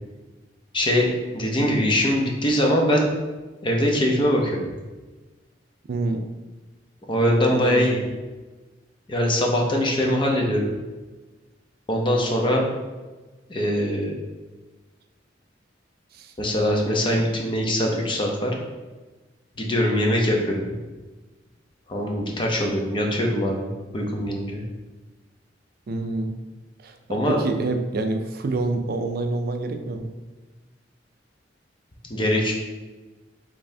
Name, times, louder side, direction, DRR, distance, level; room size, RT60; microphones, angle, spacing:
voice 1, 0.7-1.1 1.3-3.1 3.6-4.6 7.1-8.0 9.1-10.7 11.9-12.6 13.5-14.1 16.4-18.5 19.6-20.6 21.9-23.7 23.9-24.6 27.1-27.4 32.1-32.5, equal, 25° left, 0 dB, 0.7 m, -22 dB
voice 2, 5.9-6.3 7.5-7.8 16.1-16.3 25.9-26.4 26.8-30.1, right 3 dB, 55° right, 6 dB, 0.4 m, -27 dB
5.3 x 3.3 x 2.7 m, 1.2 s
head